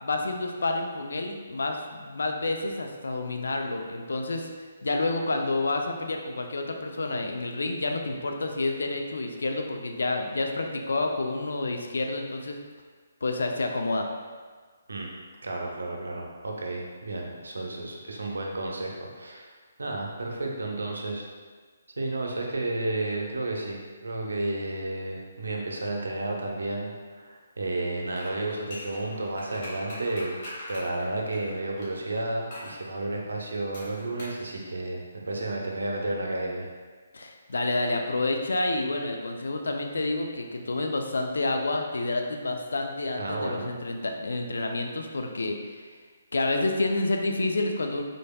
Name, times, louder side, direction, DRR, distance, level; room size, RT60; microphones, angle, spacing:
voice 1, 0.0-12.6 13.2-14.1 37.1-45.8 46.3-48.0, left 2 dB, 75° left, 3 dB, 0.4 m, -29 dB
voice 2, 15.4-19.5 19.8-21.3 22.0-36.7 43.2-43.7, right 2 dB, 85° right, 0 dB, 0.6 m, -32 dB
sound 1, 28.1-31.9 32.5-32.8 33.7-34.4 34.7-34.8, left 1 dB, 45° left, 1.3 m, -42 dB
3.9 x 3.4 x 2.2 m, 1.5 s
hypercardioid pair, 145°, 0 cm